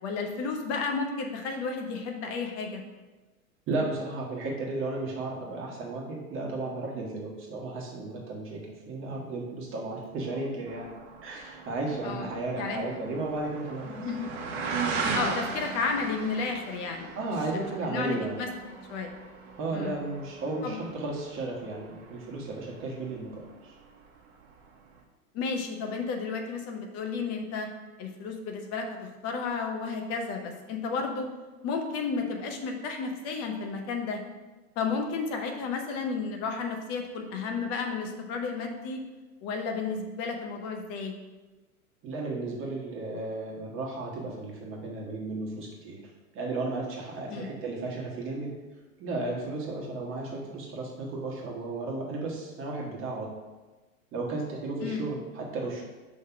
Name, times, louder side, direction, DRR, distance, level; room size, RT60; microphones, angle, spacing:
voice 1, 0.0-2.8 12.0-12.3 12.6-12.8 13.8-14.3 15.1-17.2 17.5-18.5 18.9-19.1 19.7-19.9 20.6-20.8 25.3-27.7 28.0-29.0 29.2-31.3 31.6-34.2 34.8-39.0 39.4-41.1 47.3-47.5 54.8-55.0, left 4 dB, 35° left, 4 dB, 0.9 m, -32 dB
voice 2, 3.7-14.1 17.1-18.4 19.6-23.7 42.0-46.0 46.3-48.6 49.0-53.4 54.1-55.8, right 2 dB, 30° right, -2 dB, 1.3 m, -34 dB
sound 1, 10.7-23.1 23.4-24.0 24.5-24.6, right 4 dB, 45° right, 1.2 m, -37 dB
5.6 x 3.3 x 5.7 m, 1.2 s
hypercardioid pair, 120°, 43 cm